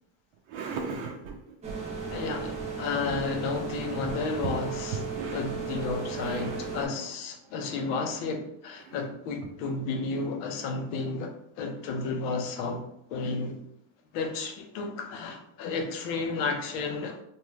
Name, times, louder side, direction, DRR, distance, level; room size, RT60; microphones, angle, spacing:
voice 1, 0.5-1.6 4.0-4.1 4.4-4.6 4.9-5.5 6.2-6.9 8.8-9.0, right 5 dB, 70° right, 1 dB, 0.6 m, -37 dB
sound 1, 1.6-6.9, right 5 dB, 15° right, 0.3 m, -35 dB
voice 2, 2.1-5.0 5.3-12.8 13.1-13.6 14.1-17.2, left 4 dB, 90° left, 4 dB, 0.8 m, -32 dB
2.7 x 2.2 x 3.1 m, 0.73 s
cardioid pair, 130°, 49 cm